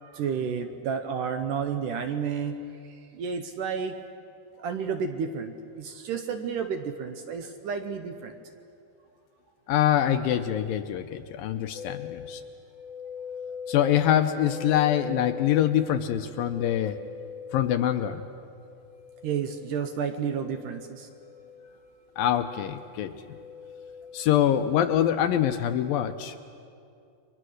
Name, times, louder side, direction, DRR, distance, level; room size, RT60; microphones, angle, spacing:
voice 1, 0.0-2.6 2.9-3.9 4.6-8.4 19.2-21.1, right 6 dB, 70° right, 7 dB, 2.1 m, -31 dB
voice 2, 9.7-12.4 13.7-17.0 17.5-18.2 22.2-23.1 24.1-26.4, left 11 dB, 75° left, 8 dB, 2.2 m, -24 dB
sound 1, 11.7-24.7, left 6 dB, 55° left, 3.6 m, -42 dB
30.0 x 23.5 x 6.4 m, 2.6 s
omnidirectional pair, 4.5 m